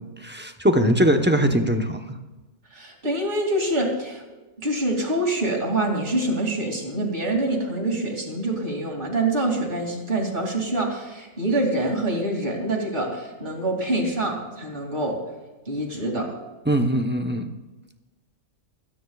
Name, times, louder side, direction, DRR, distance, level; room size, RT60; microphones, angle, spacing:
voice 1, 0.2-2.0 16.7-17.4, equal, 10° right, 4 dB, 0.6 m, -21 dB
voice 2, 2.7-4.2 4.6-15.2 15.7-16.3, right 1 dB, 35° right, 0 dB, 2.9 m, -25 dB
29.0 x 10.0 x 2.4 m, 1.2 s
omnidirectional pair, 1.6 m